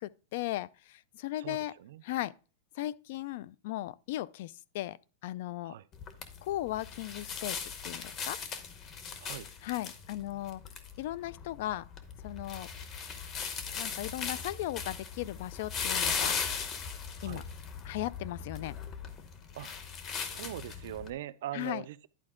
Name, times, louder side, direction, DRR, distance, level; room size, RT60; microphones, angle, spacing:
voice 1, 0.0-1.8 2.0-2.3 2.8-5.0 5.2-5.7 6.4-7.6 7.8-8.4 9.6-10.6 11.0-11.9 12.2-12.7 13.8-16.4 17.2-17.4 17.8-18.8 21.5-21.8, left 15 dB, 50° left, 0.3 m, -37 dB
voice 2, 1.4-2.0 5.6-5.8 9.2-9.5 17.2-17.4 19.5-19.7 20.1-22.1, right 13 dB, 65° right, 0.4 m, -41 dB
sound 1, 5.9-21.1, left 6 dB, 25° left, 0.8 m, -38 dB
11.0 x 4.4 x 3.6 m
supercardioid pair, 170°, 0 cm